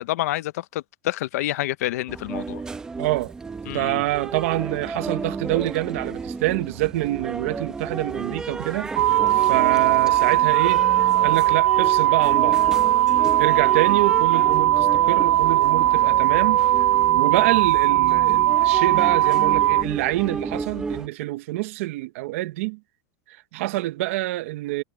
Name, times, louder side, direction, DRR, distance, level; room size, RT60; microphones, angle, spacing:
voice 1, 0.0-2.6 3.7-4.0, left 16 dB, 70° left, 0.6 m, -28 dB
sound 1, 2.1-21.1, right 4 dB, 10° right, 0.7 m, -32 dB
voice 2, 3.0-3.3 3.7-9.2 9.4-10.8 11.2-12.6 13.4-16.6 17.1-22.8 23.3-24.8, right 18 dB, 55° right, 0.8 m, -26 dB
sound 2, 8.6-13.9, left 5 dB, 10° left, 7.9 m, -61 dB
sound 3, 9.0-19.8, right 14 dB, 90° right, 0.4 m, -19 dB
supercardioid pair, 180°, 9 cm